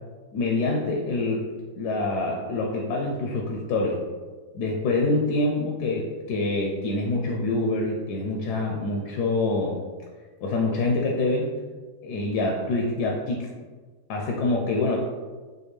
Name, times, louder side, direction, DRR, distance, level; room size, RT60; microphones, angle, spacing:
voice 1, 0.3-1.5 1.8-4.0 4.5-9.8 10.4-11.5 12.0-13.5 14.1-15.0, left 2 dB, 70° left, -1 dB, 1.0 m, -26 dB
5.2 x 2.2 x 3.1 m, 1.4 s
omnidirectional pair, 2.0 m